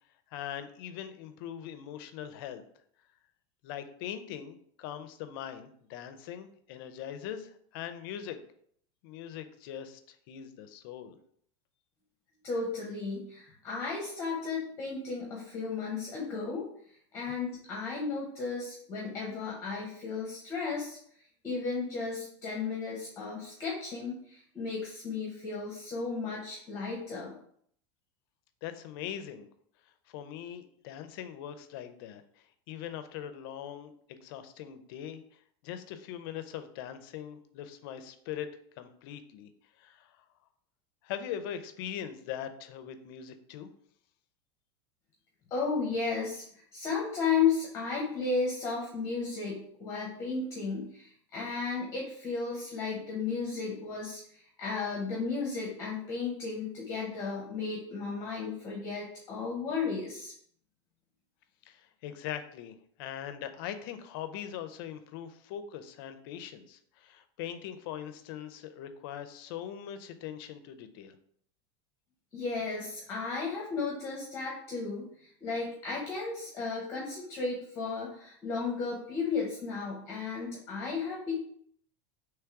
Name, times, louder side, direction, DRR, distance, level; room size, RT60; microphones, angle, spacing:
voice 1, 0.3-2.6 3.6-8.4 9.0-11.2 28.6-29.5 30.1-35.2 35.6-38.5 38.8-39.5 39.8-40.2 41.0-43.7 61.6-71.2, left 10 dB, 50° left, 9 dB, 0.5 m, -41 dB
voice 2, 12.4-16.7 17.1-21.0 21.4-27.4 45.5-60.3 72.3-81.4, left 4 dB, 20° left, -3 dB, 0.9 m, -34 dB
3.5 x 3.2 x 4.5 m, 0.64 s
supercardioid pair, 170°, 15 cm